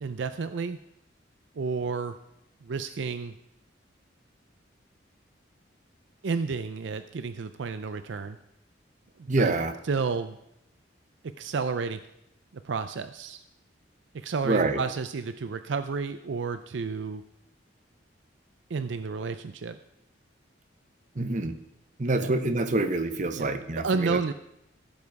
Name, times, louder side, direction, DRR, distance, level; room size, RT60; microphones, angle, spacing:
voice 1, 0.0-0.8 1.6-2.2 2.6-3.3 6.2-8.4 9.2-9.5 9.9-10.4 11.2-12.0 12.5-13.4 14.1-17.2 18.7-19.8 22.1-22.3 23.3-24.3, right 4 dB, 70° right, 10 dB, 0.5 m, -31 dB
voice 2, 9.3-9.7 14.4-14.8 21.1-21.5 22.0-24.3, right 2 dB, 40° right, 7 dB, 0.9 m, -26 dB
15.5 x 7.3 x 4.7 m, 0.81 s
head